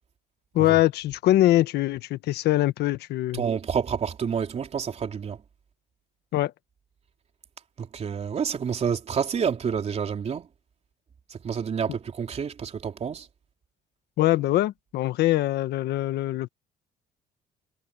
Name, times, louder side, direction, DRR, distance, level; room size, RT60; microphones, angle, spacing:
voice 1, 0.5-3.4 6.3-6.5 14.2-16.5, left 15 dB, 75° left, 1.3 m, -23 dB
voice 2, 3.3-5.4 7.8-10.5 11.3-13.3, right 7 dB, 40° right, 3.7 m, -28 dB
cardioid pair, 110°, 17 cm